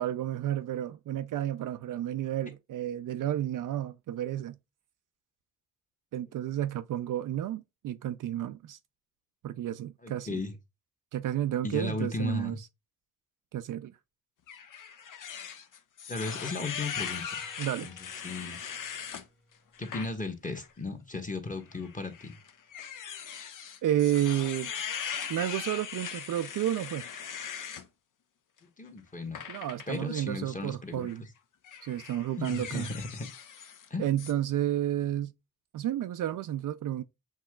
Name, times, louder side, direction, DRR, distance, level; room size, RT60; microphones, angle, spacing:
voice 1, 0.0-4.6 6.1-8.8 9.4-10.4 11.1-12.6 13.5-13.9 17.6-17.9 23.8-24.7 25.3-27.0 29.5-31.2 31.8-32.9 34.0-35.3 35.7-37.0, right 12 dB, 55° right, 0.5 m, -31 dB
voice 2, 10.0-10.5 11.6-12.6 16.1-17.4 17.8-17.9 18.2-18.6 19.8-22.4 28.8-29.4 29.9-31.1 32.4-33.3 33.9-34.2, left 2 dB, 20° left, 1.2 m, -35 dB
sound 1, 14.5-19.2 19.7-20.1 20.5-20.7 21.7-27.9 29.3-30.0 30.9-31.2 31.6-33.9 34.2-34.3, left 8 dB, 55° left, 0.7 m, -40 dB
sound 2, 16.8-21.0, left 1 dB, ahead, 0.9 m, -56 dB
7.2 x 2.8 x 2.3 m
supercardioid pair, 60°, 38 cm